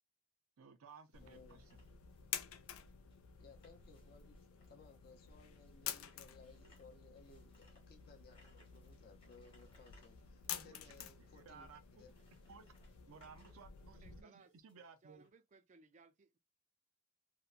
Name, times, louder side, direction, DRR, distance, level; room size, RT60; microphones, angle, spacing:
voice 1, 0.6-1.8 10.5-11.8 12.5-12.7 13.1-15.3, right 5 dB, 90° right, 0.5 m, -58 dB
sound 1, 0.9-15.3, left 2 dB, 25° left, 1.0 m, -73 dB
sound 2, 1.1-14.2, left 9 dB, 90° left, 0.4 m, -50 dB
voice 2, 1.2-1.6 3.4-12.1, left 4 dB, 45° left, 0.6 m, -62 dB
voice 3, 13.8-14.5 15.0-16.4, right 4 dB, 35° right, 0.3 m, -65 dB
2.8 x 2.1 x 2.3 m
head